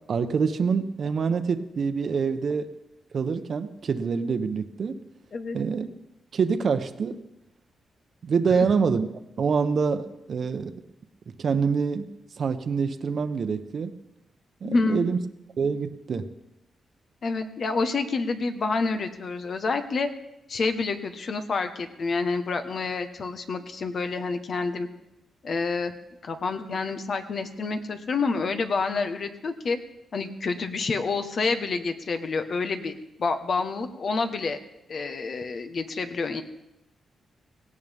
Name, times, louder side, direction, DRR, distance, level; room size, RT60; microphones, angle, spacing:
voice 1, 0.1-2.7 3.1-5.0 5.5-5.9 6.3-7.2 8.2-9.1 9.4-10.7 11.3-12.1 12.4-14.0 14.6-15.2 15.6-16.3, right 5 dB, 55° right, 9 dB, 1.0 m, -26 dB
voice 2, 14.6-15.1 17.2-20.1 20.5-24.9 25.4-25.9 26.2-29.8 30.1-32.9 33.2-34.6 34.9-36.4, left 4 dB, 55° left, 7 dB, 1.3 m, -28 dB
17.5 x 17.0 x 3.6 m, 0.90 s
cardioid pair, 100°, 0 cm